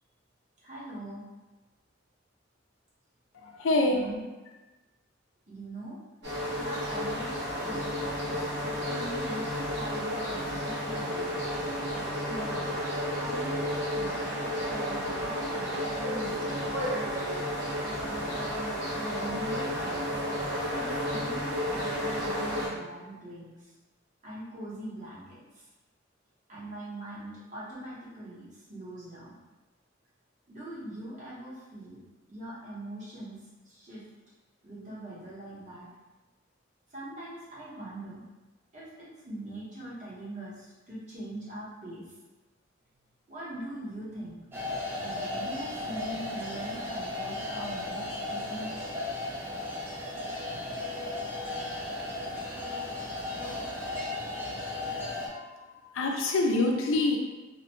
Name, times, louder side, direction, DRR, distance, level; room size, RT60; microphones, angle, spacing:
voice 1, 0.6-1.3 3.8-4.2 5.5-6.0 6.5-7.9 8.2-8.5 8.9-11.3 11.9-12.8 13.2-14.2 14.8-16.9 18.0-18.4 19.1-20.0 20.7-23.7 24.2-25.7 26.5-29.3 30.5-32.0 32.3-33.4 33.6-34.0 34.6-35.9 36.9-38.2 38.7-42.0 43.3-44.4 44.9-48.9, right 1 dB, 40° right, -8 dB, 1.0 m, -42 dB
voice 2, 3.4-4.0 55.3-55.5 55.9-57.2, left 2 dB, 80° left, 2 dB, 0.4 m, -26 dB
sound 1, 6.2-22.7, equal, 60° right, 1.2 m, -32 dB
sound 2, 44.5-55.3, left 2 dB, 10° right, 0.5 m, -35 dB
2.8 x 2.1 x 2.9 m, 1.2 s
head